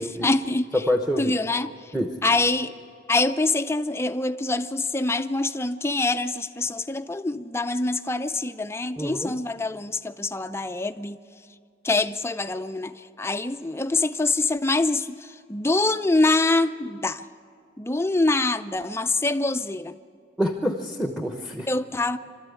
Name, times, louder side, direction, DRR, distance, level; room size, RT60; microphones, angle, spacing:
voice 1, 0.0-0.8 1.2-1.9 2.2-2.7 3.1-11.2 11.8-17.3 17.8-20.0 21.7-22.2, left 2 dB, 15° left, 0.5 m, -25 dB
voice 2, 0.7-1.3 1.9-2.2 9.0-9.3 20.4-21.7, equal, 5° right, 0.9 m, -26 dB
27.0 x 13.0 x 8.3 m
head